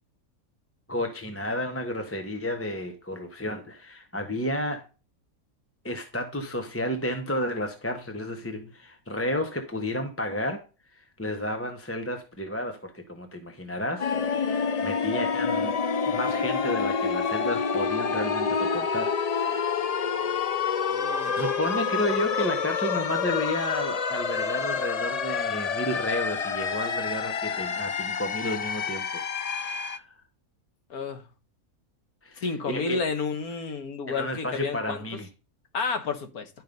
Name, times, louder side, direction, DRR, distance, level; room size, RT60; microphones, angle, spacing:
voice 1, 0.9-4.9 5.8-10.6 10.9-15.8 16.0-19.7 21.2-30.1 32.2-33.0 34.0-35.3, left 1 dB, 10° left, 1.0 m, -32 dB
sound 1, 14.0-30.0, left 6 dB, 65° left, 0.3 m, -28 dB
voice 2, 20.9-21.3 30.9-31.2 32.4-35.0 35.7-36.5, left 4 dB, 80° left, 1.9 m, -31 dB
11.0 x 5.5 x 5.3 m
omnidirectional pair, 1.5 m